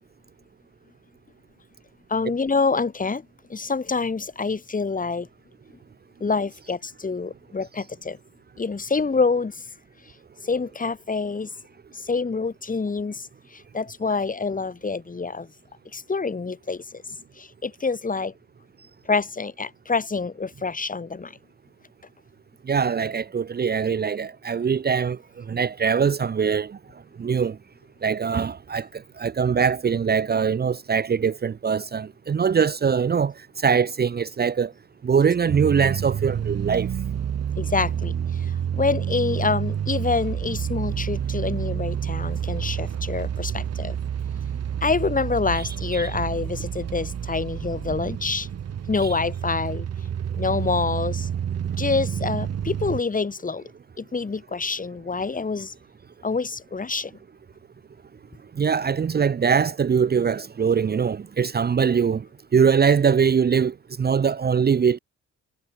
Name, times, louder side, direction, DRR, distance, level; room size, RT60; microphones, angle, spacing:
voice 1, 2.1-3.2 3.5-5.3 6.2-8.2 8.6-9.6 10.4-11.5 11.9-15.5 15.9-17.0 17.4-18.3 19.1-21.3 37.6-44.0 44.8-48.5 48.9-49.9 50.3-51.3 51.7-53.6 54.0-55.7 56.2-57.1, left 4 dB, 25° left, 3.0 m, -26 dB
voice 2, 22.7-25.2 25.5-26.8 27.2-27.6 28.0-28.9 29.2-34.7 35.0-36.9 45.9-46.0 58.6-62.2 62.5-65.0, right 6 dB, 35° right, 0.9 m, -22 dB
sound 1, 35.5-53.0, right 9 dB, 55° right, 2.9 m, -29 dB
cardioid pair, 90°, 30 cm